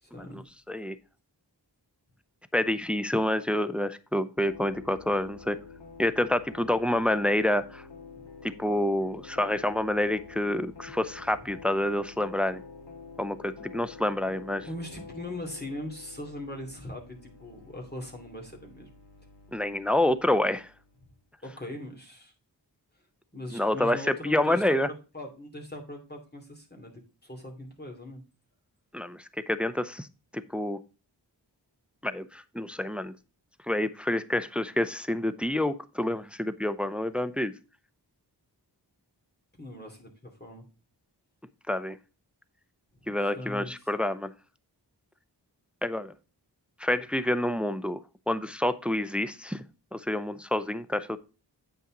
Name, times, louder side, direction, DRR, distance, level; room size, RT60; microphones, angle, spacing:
voice 1, 0.0-0.4 8.2-8.3 11.4-11.6 14.6-18.9 21.0-21.1 21.4-22.3 23.3-28.2 39.6-40.7 42.9-43.9, left 1 dB, 25° left, 1 dB, 2.6 m, -41 dB
voice 2, 2.5-5.6 6.0-7.8 8.6-12.6 13.2-14.7 19.5-20.7 23.5-24.0 24.2-24.9 28.9-29.2 29.5-30.1 30.3-30.8 32.0-33.1 33.7-37.5 41.7-42.0 43.1-44.3 45.8-46.1 46.8-48.0 48.3-49.6 49.9-51.2, left 1 dB, 5° right, 13 dB, 0.5 m, -28 dB
sound 1, 4.4-21.1, left 5 dB, 80° left, 2.2 m, -48 dB
8.6 x 5.7 x 3.8 m, 0.32 s
wide cardioid pair, 50°, 43 cm